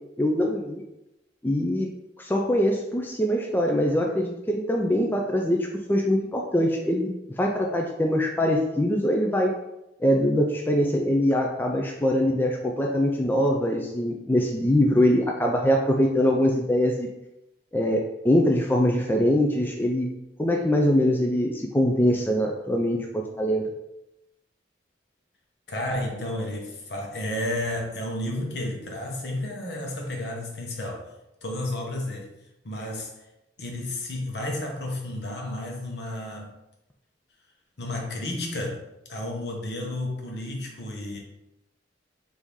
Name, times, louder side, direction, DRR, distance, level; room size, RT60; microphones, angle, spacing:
voice 1, 0.2-0.8 1.4-1.9 2.2-7.1 7.4-9.6 10.0-17.1 17.7-20.1 20.4-23.6, equal, 10° left, 0 dB, 0.3 m, -23 dB
voice 2, 25.7-31.1 31.4-32.3 32.6-33.1 33.6-36.5 37.8-38.8 39.1-41.2, left 1 dB, 65° left, 1 dB, 0.9 m, -32 dB
3.6 x 2.7 x 4.6 m, 0.90 s
head